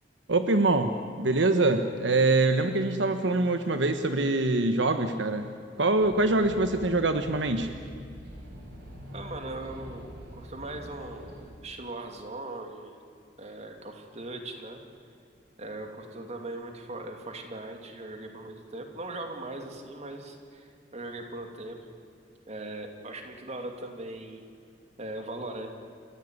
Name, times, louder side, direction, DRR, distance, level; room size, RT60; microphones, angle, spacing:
voice 1, 0.3-5.5 5.8-7.7, right 2 dB, 80° right, 8 dB, 1.3 m, -24 dB
sound 1, 6.0-11.4, equal, 65° right, 6.0 m, -44 dB
voice 2, 9.1-10.1 10.3-13.0 13.4-14.8 15.6-21.8 22.5-24.4 25.0-25.7, right 2 dB, 40° right, 4 dB, 2.9 m, -39 dB
29.5 x 15.5 x 9.5 m, 2.3 s
head